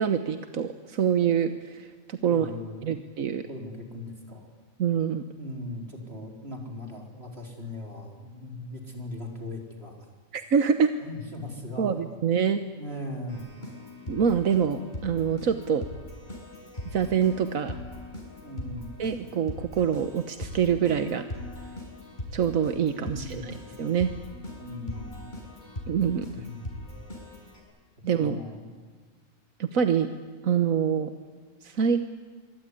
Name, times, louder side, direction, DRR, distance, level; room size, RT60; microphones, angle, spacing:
voice 1, 0.0-2.5 2.8-3.4 4.8-5.2 10.3-10.9 11.8-12.6 14.1-15.8 16.9-17.7 19.0-21.2 22.3-24.1 25.9-26.3 28.0-28.4 29.6-30.1 30.4-31.1 31.6-32.0, right 7 dB, 85° right, 8 dB, 1.5 m, -25 dB
voice 2, 2.3-3.0 3.5-4.5 5.4-10.0 11.0-12.3 12.7-13.4 18.4-18.9 23.0-23.5 24.6-25.3 26.3-26.9 28.2-28.7, left 1 dB, 50° right, 2 dB, 4.7 m, -39 dB
Keyboard (musical), 13.3-27.6, left 1 dB, 35° left, 6.8 m, -40 dB
24.5 x 24.0 x 9.9 m, 1.5 s
omnidirectional pair, 1.4 m